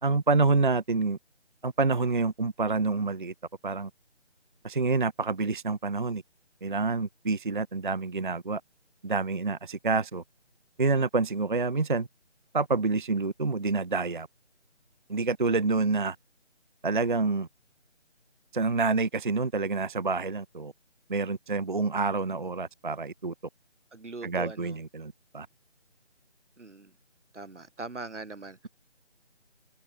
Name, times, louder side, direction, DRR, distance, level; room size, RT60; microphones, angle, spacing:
voice 1, 0.0-1.2 1.6-3.3 3.6-3.9 4.6-6.2 6.6-8.6 9.0-10.2 10.8-12.1 12.5-14.3 15.1-16.2 16.8-17.5 18.5-20.7 21.1-23.3 24.2-25.5, right 3 dB, 45° right, 0.5 m, -27 dB
voice 2, 23.9-24.8 26.6-26.9 27.3-28.7, right 3 dB, 80° right, 2.2 m, -41 dB
figure-of-eight pair, 165°, 35 cm